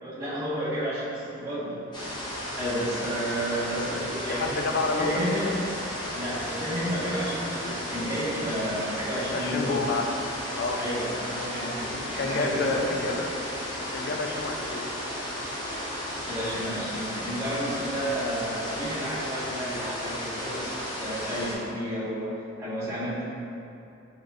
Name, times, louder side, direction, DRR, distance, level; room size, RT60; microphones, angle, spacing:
voice 1, 0.0-2.2 2.6-4.6 5.0-5.6 6.1-9.8 10.7-13.1 16.3-22.3 22.6-23.2, equal, 15° right, -13 dB, 1.4 m, -31 dB
sound 1, 1.9-21.5, equal, 20° left, 0.8 m, -34 dB
voice 2, 4.3-5.5 9.3-10.0 10.5-10.8 12.0-13.3 13.9-14.8, left 3 dB, 55° left, 3 dB, 0.4 m, -29 dB
6.0 x 3.0 x 2.5 m, 2.9 s
head